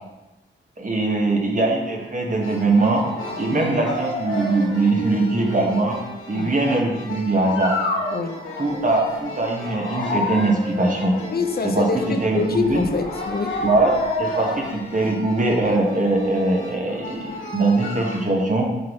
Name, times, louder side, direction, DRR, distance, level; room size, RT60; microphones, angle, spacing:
voice 1, 0.8-3.0 3.4-6.0 6.3-7.8 8.6-11.1 11.6-12.8 13.6-13.9 14.2-18.7, right 2 dB, 40° right, 0 dB, 1.5 m, -21 dB
sound 1, 2.4-18.2, left 2 dB, 80° left, 1.4 m, -31 dB
voice 2, 11.3-13.6, left 4 dB, 50° left, 8 dB, 0.5 m, -25 dB
8.5 x 3.9 x 3.2 m, 1.1 s
cardioid pair, 50°, 20 cm